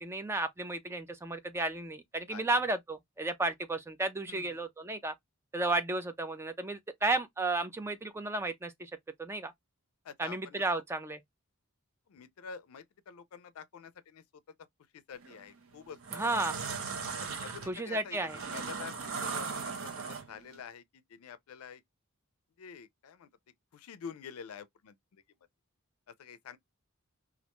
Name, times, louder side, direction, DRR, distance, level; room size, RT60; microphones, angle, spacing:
voice 1, 0.0-5.1 5.5-8.9 9.2-9.5 10.2-11.2 16.1-16.6 17.7-18.4, right 2 dB, 10° right, 0.3 m, -33 dB
voice 2, 4.3-4.6 10.0-10.8 12.1-14.4 14.9-16.3 17.2-18.2 18.4-18.9 19.2-21.8 22.6-23.3 23.7-25.2 26.1-26.6, left 6 dB, 80° left, 0.4 m, -48 dB
sound 1, 15.2-15.4 15.9-20.5, right 5 dB, 70° right, 0.6 m, -38 dB
2.4 x 2.1 x 2.8 m
head